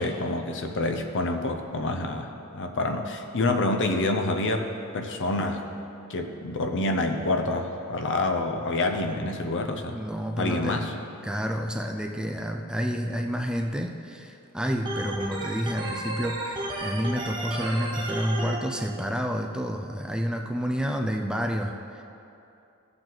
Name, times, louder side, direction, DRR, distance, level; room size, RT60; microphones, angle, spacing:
voice 1, 0.0-4.7 4.9-5.6 6.1-10.0 10.4-10.9, left 2 dB, 55° left, 4 dB, 0.8 m, -27 dB
voice 2, 9.9-10.9 11.2-22.0, equal, 5° right, 3 dB, 0.4 m, -29 dB
Organ, 14.9-18.6, right 2 dB, 20° right, 1.1 m, -33 dB
15.0 x 7.0 x 4.0 m, 2.8 s
head